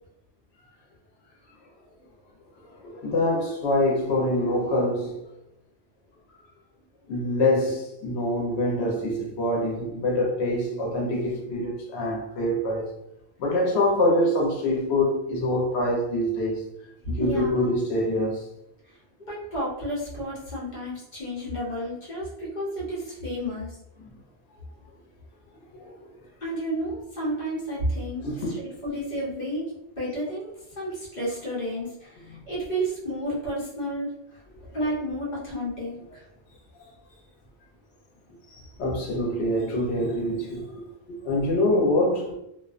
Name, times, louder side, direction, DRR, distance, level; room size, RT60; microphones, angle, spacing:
voice 1, 2.8-5.2 7.1-12.9 13.4-16.6 17.1-18.5 25.7-26.1 28.2-28.6 34.7-34.8 38.5-40.8 41.1-42.3, left 1 dB, 90° left, 0.9 m, -25 dB
voice 2, 17.2-17.8 19.2-23.7 26.4-30.5 30.8-34.1 34.7-36.2, equal, 45° left, 1.0 m, -31 dB
2.4 x 2.2 x 2.4 m
omnidirectional pair, 1.1 m